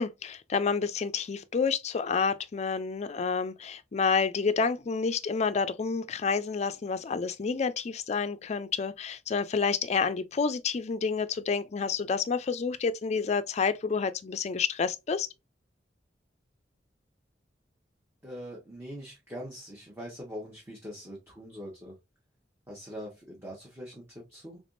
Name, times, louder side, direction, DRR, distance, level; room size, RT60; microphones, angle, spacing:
voice 1, 0.0-15.3, left 5 dB, 40° left, 0.4 m, -29 dB
voice 2, 18.2-21.9 22.7-24.6, equal, 15° right, 1.0 m, -42 dB
3.5 x 3.4 x 2.5 m
head